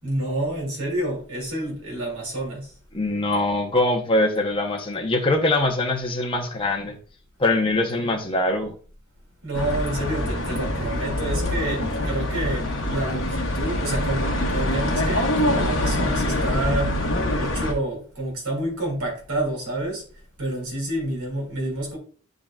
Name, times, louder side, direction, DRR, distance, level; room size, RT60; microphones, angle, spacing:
voice 1, 0.0-2.7 9.4-16.9 17.4-20.0 20.4-22.0, right 1 dB, 75° right, 2.9 m, -28 dB
voice 2, 2.9-7.0 7.4-8.7, left 2 dB, 25° left, 0.9 m, -23 dB
sound 1, 9.5-17.7, left 1 dB, 60° left, 1.1 m, -24 dB
10.5 x 3.9 x 2.4 m
head